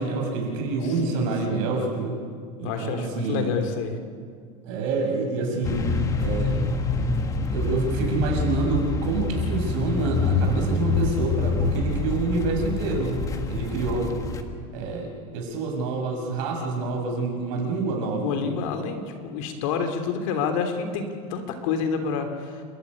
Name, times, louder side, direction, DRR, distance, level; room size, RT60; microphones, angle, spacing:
voice 1, 0.0-2.2 2.6-3.5 4.6-5.9 6.2-6.6 7.5-13.2 13.4-14.1 14.7-18.4, right 3 dB, 60° right, 2 dB, 6.7 m, -27 dB
voice 2, 2.6-4.0 18.2-22.6, left 6 dB, 60° left, 5 dB, 3.2 m, -28 dB
sound 1, 5.6-14.4, left 4 dB, 15° left, 1.6 m, -26 dB
30.0 x 13.0 x 9.8 m, 2.1 s
supercardioid pair, 165°, 18 cm